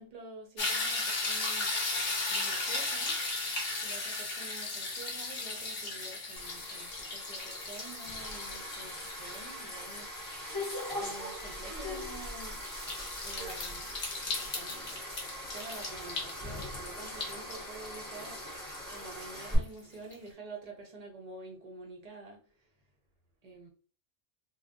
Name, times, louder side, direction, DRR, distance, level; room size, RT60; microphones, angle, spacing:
voice 1, 0.0-3.2 3.8-10.2 11.0-12.7 13.2-14.0 14.3-18.6 18.9-22.4 23.4-23.7, right 3 dB, 35° right, 0.7 m, -48 dB
sound 1, 0.6-19.6 20.1-20.2, left 3 dB, 50° left, 1.0 m, -37 dB
sound 2, 6.4-19.5, left 1 dB, 15° left, 1.1 m, -41 dB
2.5 x 2.3 x 3.5 m
omnidirectional pair, 1.4 m